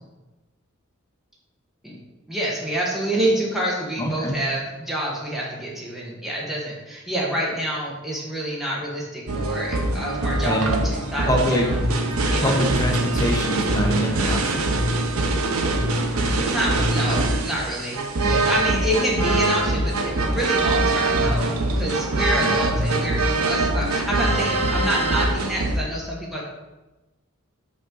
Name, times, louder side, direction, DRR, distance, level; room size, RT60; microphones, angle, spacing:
voice 1, 2.3-11.7 12.3-12.5 16.3-18.0 18.3-26.4, right 1 dB, ahead, -4 dB, 1.1 m, -27 dB
voice 2, 4.0-4.3 9.7-10.0 10.4-10.8 11.3-11.7 12.4-14.7 18.2-18.4 22.4-22.5, equal, 15° left, 0 dB, 0.7 m, -24 dB
sound 1, 9.3-25.8, right 2 dB, 80° right, 0.7 m, -23 dB
5.4 x 5.2 x 3.8 m, 1.1 s
head